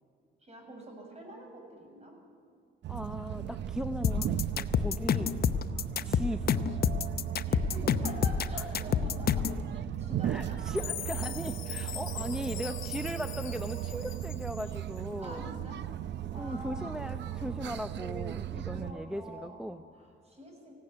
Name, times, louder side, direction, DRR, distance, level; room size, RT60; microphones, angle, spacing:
voice 1, 0.4-2.2 4.9-5.3 5.7-6.1 7.4-10.7 12.1-12.4 15.2-15.9 16.3-18.0 18.7-20.7, right 1 dB, 35° right, 2 dB, 7.0 m, -47 dB
sound 1, 2.8-18.9, right 11 dB, 65° right, 0.6 m, -37 dB
voice 2, 2.9-5.4 6.0-6.6 8.5-8.7 10.2-15.5 16.3-19.8, equal, 5° right, 7 dB, 0.7 m, -38 dB
sound 2, 4.0-9.6, left 8 dB, 50° left, 0.8 m, -28 dB
Chime, 10.8-15.0, left 12 dB, 75° left, 1.3 m, -42 dB
18.5 x 16.5 x 9.8 m, 2.4 s
cardioid pair, 90°, 20 cm